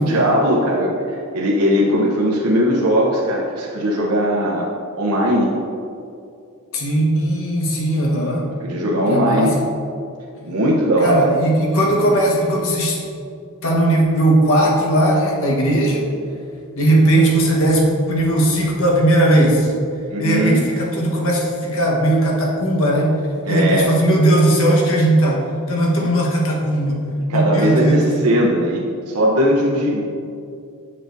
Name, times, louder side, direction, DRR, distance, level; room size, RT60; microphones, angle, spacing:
voice 1, 0.0-4.7 5.0-5.5 8.6-9.6 10.4-11.3 20.1-20.6 23.4-23.9 26.0-26.1 27.3-30.0, equal, 85° right, -3 dB, 0.8 m, -19 dB
voice 2, 6.7-8.5 9.0-9.7 11.0-13.0 13.6-16.0 16.7-19.7 20.2-23.1 23.5-27.0 27.3-28.0, right 1 dB, 65° left, -2 dB, 1.2 m, -17 dB
7.5 x 6.5 x 2.6 m, 2.5 s
head